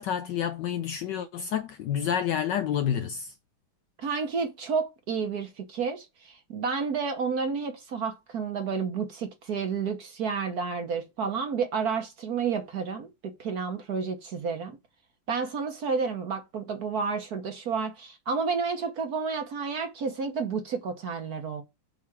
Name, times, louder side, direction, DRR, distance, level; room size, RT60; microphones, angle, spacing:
voice 1, 0.0-3.3, left 9 dB, 75° left, 1.0 m, -29 dB
voice 2, 4.0-14.8 15.3-21.6, right 5 dB, 55° right, 1.4 m, -30 dB
7.5 x 3.5 x 6.0 m
omnidirectional pair, 2.3 m